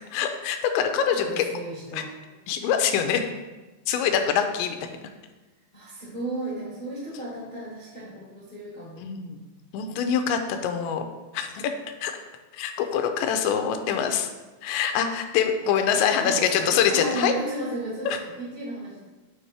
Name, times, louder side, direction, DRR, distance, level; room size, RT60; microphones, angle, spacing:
voice 1, 0.1-1.6 1.9-2.0 2.5-3.3 3.9-4.8 9.0-9.4 9.7-11.0 11.3-11.7 12.0-12.1 12.5-14.3 14.6-17.3 18.1-18.2, left 8 dB, 85° left, 6 dB, 2.9 m, -24 dB
voice 2, 1.1-2.1 5.7-9.0 16.2-19.1, right 1 dB, 65° left, -9 dB, 0.5 m, -34 dB
11.0 x 4.8 x 3.4 m, 1.2 s
omnidirectional pair, 5.2 m